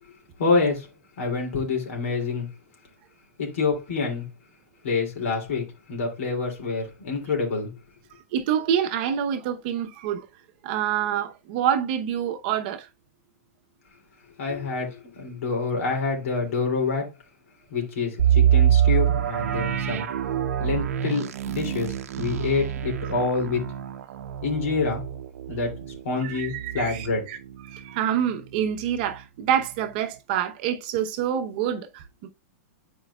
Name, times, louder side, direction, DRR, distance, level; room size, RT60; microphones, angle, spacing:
voice 1, 0.4-0.9 1.2-2.5 3.4-4.3 4.8-7.7 14.4-17.1 17.7-20.1 20.6-23.7 24.4-25.0 25.5-27.2, left 4 dB, 65° left, 2.9 m, -27 dB
voice 2, 8.3-10.3 10.6-12.9 26.2-27.4 27.7-32.3, right 9 dB, 40° right, 0.9 m, -27 dB
sound 1, 18.2-27.9 28.3-28.4 28.9-29.1, right 10 dB, 75° right, 0.7 m, -25 dB
10.5 x 4.6 x 2.4 m
supercardioid pair, 165°, 8 cm